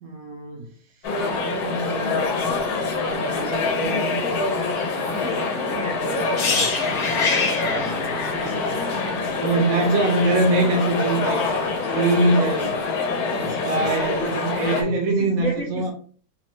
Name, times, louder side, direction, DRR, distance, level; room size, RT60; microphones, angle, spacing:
voice 1, 0.0-0.7 1.3-2.2 3.0-4.2 7.6-7.8 9.4-11.4 11.9-12.8 13.3-15.9, right 2 dB, 75° right, 1.1 m, -23 dB
sound 1, 1.0-14.8, left 4 dB, 85° left, 1.2 m, -25 dB
voice 2, 5.1-6.7 14.8-14.9 15.2-15.9, right 2 dB, 45° left, 0.8 m, -33 dB
sound 2, 6.4-10.2 10.5-10.7, left 4 dB, 70° left, 1.1 m, -26 dB
3.1 x 2.1 x 3.0 m
omnidirectional pair, 1.6 m